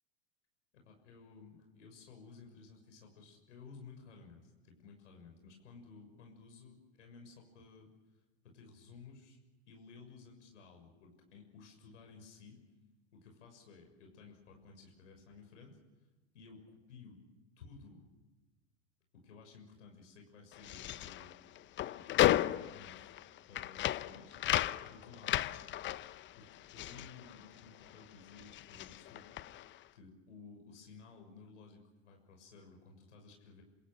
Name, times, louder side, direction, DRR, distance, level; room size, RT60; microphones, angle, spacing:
voice 1, 0.8-7.9 8.4-9.4 9.7-12.6 13.1-15.8 16.3-17.2 17.6-18.0 19.1-21.3 21.6-23.1 23.5-24.4 24.7-25.5 26.4-29.7 29.9-33.6, left 4 dB, 75° left, 2 dB, 6.6 m, -55 dB
sound 1, 20.5-28.0 28.3-29.8, left 14 dB, 30° left, 0.8 m, -35 dB
27.5 x 27.0 x 6.2 m, 1.2 s
hypercardioid pair, 90°, 37 cm